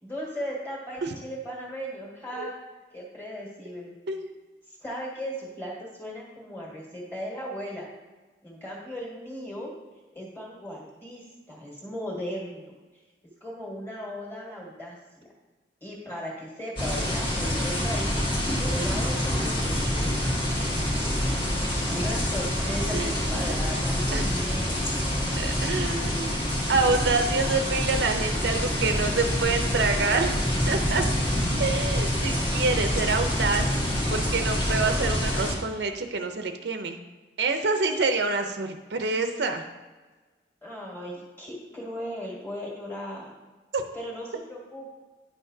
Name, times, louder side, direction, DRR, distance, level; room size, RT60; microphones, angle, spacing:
voice 1, 0.0-2.5 2.9-3.9 4.8-7.9 8.4-9.7 10.1-12.7 13.4-15.3 15.8-18.2 18.6-20.1 20.5-21.2 21.6-23.0 23.3-24.8 40.6-43.3 43.9-45.0, equal, 10° left, -4 dB, 1.7 m, -37 dB
sound 1, 16.8-35.5, equal, 30° left, 1.4 m, -26 dB
voice 2, 22.9-23.5 24.1-24.3 25.4-30.3 30.7-31.1 31.6-33.7 34.1-37.0 37.4-39.6 43.7-43.8, right 3 dB, 80° right, 6 dB, 0.6 m, -27 dB
9.8 x 5.8 x 2.7 m, 1.3 s
head